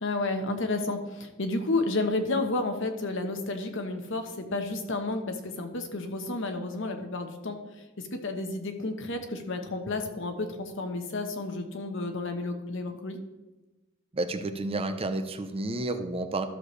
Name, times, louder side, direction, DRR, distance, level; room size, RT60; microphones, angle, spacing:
voice 1, 0.0-13.2, left 2 dB, 65° left, 6 dB, 1.1 m, -31 dB
voice 2, 14.1-16.4, right 2 dB, 30° right, 9 dB, 0.6 m, -31 dB
13.0 x 6.7 x 3.2 m, 1.1 s
head